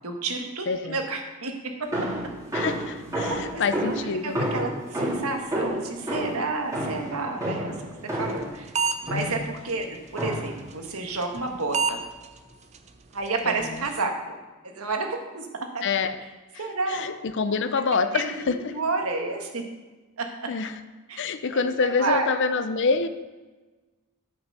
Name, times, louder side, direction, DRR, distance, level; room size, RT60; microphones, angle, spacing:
voice 1, 0.0-1.5 1.8-2.1 3.3-3.9 4.2-7.7 8.0-8.7 9.0-12.0 13.1-14.4 14.6-15.8 16.6-17.1 17.5-17.6 18.1-19.6 20.2-20.5 21.1-21.2 21.5-22.3, right 3 dB, 85° right, 3 dB, 1.5 m, -30 dB
voice 2, 0.7-1.0 2.5-4.4 13.4-13.5 15.8-16.2 16.9-18.7 20.5-20.8 21.2-23.1, left 4 dB, 55° left, 11 dB, 0.6 m, -26 dB
sound 1, 1.9-8.6 9.1-9.5 10.2-10.7, right 1 dB, 15° right, 2.7 m, -30 dB
sound 2, 8.4-8.5 8.8-9.2 9.7-9.8 11.2-11.4 11.7-11.9 12.2-12.3 12.7-12.8 13.3-13.4 13.6-14.0, right 6 dB, 30° right, 0.6 m, -25 dB
9.2 x 6.1 x 6.7 m, 1.2 s
head